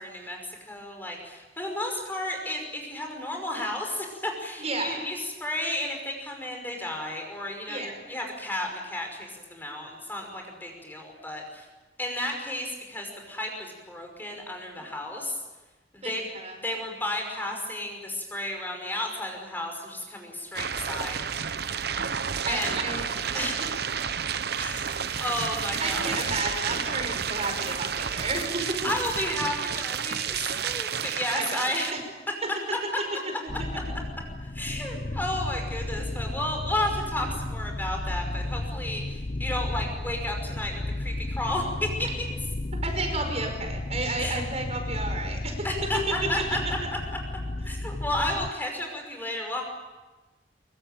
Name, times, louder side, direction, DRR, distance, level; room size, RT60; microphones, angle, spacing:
voice 1, 0.0-11.7 12.0-15.4 15.9-16.3 16.6-21.2 22.5-22.8 23.3-23.6 24.6-26.4 28.6-31.9 34.5-42.1 44.2-44.4 45.6-46.6 47.6-49.6, left 1 dB, 10° left, 2 dB, 5.5 m, -33 dB
voice 2, 4.6-5.0 7.7-7.9 16.0-16.6 21.9-23.1 23.3-23.5 25.1-25.2 25.8-28.6 31.3-32.0 42.8-45.7, right 2 dB, 40° right, 4 dB, 5.4 m, -32 dB
sound 1, 20.5-31.9, right 7 dB, 65° right, 1.0 m, -31 dB
sound 2, 33.5-48.5, left 2 dB, 40° left, 0.8 m, -33 dB
24.5 x 23.0 x 9.1 m, 1.2 s
head